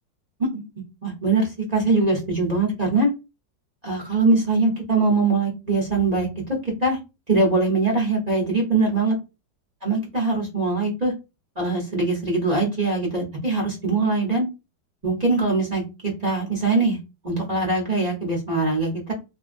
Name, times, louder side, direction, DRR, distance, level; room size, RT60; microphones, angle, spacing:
voice 1, 1.0-3.1 3.8-7.0 7.3-9.2 9.8-11.1 11.6-14.5 15.0-17.0 17.2-19.1, right 3 dB, 40° right, -2 dB, 0.5 m, -22 dB
2.9 x 2.6 x 2.5 m, 0.27 s
omnidirectional pair, 1.9 m